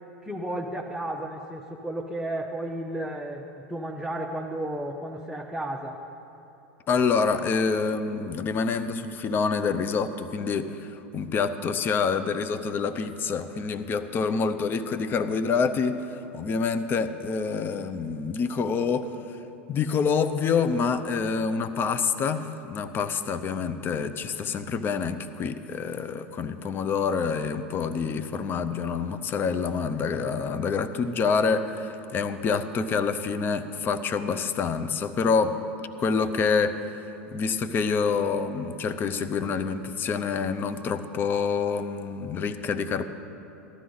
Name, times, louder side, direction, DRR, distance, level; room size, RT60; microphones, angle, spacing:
voice 1, 0.2-6.0, right 1 dB, ahead, 0 dB, 0.8 m, -33 dB
voice 2, 6.9-19.1 19.7-35.5 36.0-43.0, left 5 dB, 35° left, 10 dB, 0.7 m, -27 dB
14.5 x 12.5 x 4.0 m, 2.9 s
hypercardioid pair, 90°, 6 cm